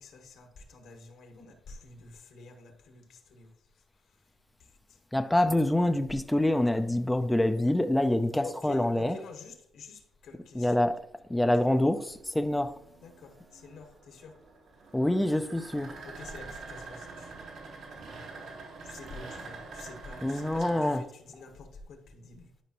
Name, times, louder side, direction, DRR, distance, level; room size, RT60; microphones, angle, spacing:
voice 1, 0.0-3.5 8.4-10.9 11.6-11.7 13.0-14.4 16.0-17.3 18.8-22.5, left 4 dB, 75° left, 1.4 m, -48 dB
voice 2, 5.1-9.2 10.5-11.0 11.3-12.7 14.9-16.0 20.2-21.1, left 1 dB, 10° left, 0.4 m, -26 dB
sound 1, 11.2-21.0, right 3 dB, 80° right, 2.2 m, -46 dB
11.0 x 5.0 x 2.9 m
cardioid pair, 90°, 0 cm